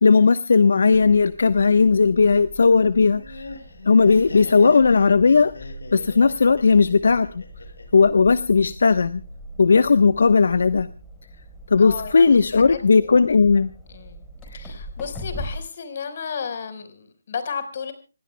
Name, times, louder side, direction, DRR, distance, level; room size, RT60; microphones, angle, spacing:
voice 1, 0.0-3.4 3.9-7.3 7.9-9.2 9.6-10.9 11.7-13.7 14.5-14.6, left 4 dB, 65° left, 12 dB, 1.0 m, -17 dB
sound 1, 0.9-15.6, equal, 10° left, 4.7 m, -41 dB
Laughter, 3.0-8.0, left 3 dB, 90° left, 7.9 m, -38 dB
voice 2, 11.8-13.1 13.9-14.2 14.5-17.9, left 6 dB, 40° left, 9 dB, 4.6 m, -33 dB
28.0 x 18.5 x 2.3 m, 0.36 s
hypercardioid pair, 170°, 0 cm